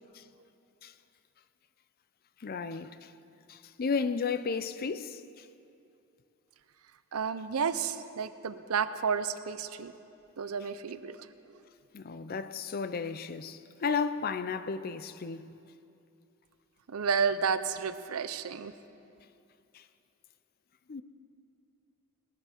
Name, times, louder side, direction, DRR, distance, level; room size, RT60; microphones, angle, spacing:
voice 1, 2.4-3.1 3.5-5.5 11.9-15.6 19.7-19.8 20.9-21.0, left 5 dB, 45° left, 0.4 m, -34 dB
voice 2, 7.1-9.9 10.4-11.3 16.9-18.7, right 6 dB, 90° right, 0.6 m, -31 dB
19.5 x 7.3 x 6.6 m
head